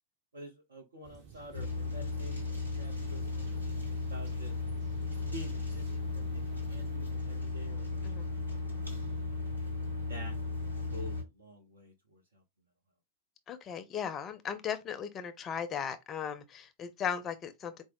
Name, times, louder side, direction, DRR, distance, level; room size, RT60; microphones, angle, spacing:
voice 1, 0.3-2.5 2.8-3.5 4.1-4.6 5.3-6.4 6.7-9.0 10.1-10.4 10.9-12.4, right 1 dB, 70° right, 0.7 m, -49 dB
sound 1, 1.0-7.0, right 6 dB, 45° right, 1.0 m, -53 dB
sound 2, 1.5-11.2, left 3 dB, 90° right, 1.1 m, -35 dB
voice 2, 13.5-17.8, left 7 dB, 25° left, 0.5 m, -37 dB
4.5 x 2.1 x 3.6 m
figure-of-eight pair, 90°, 0 cm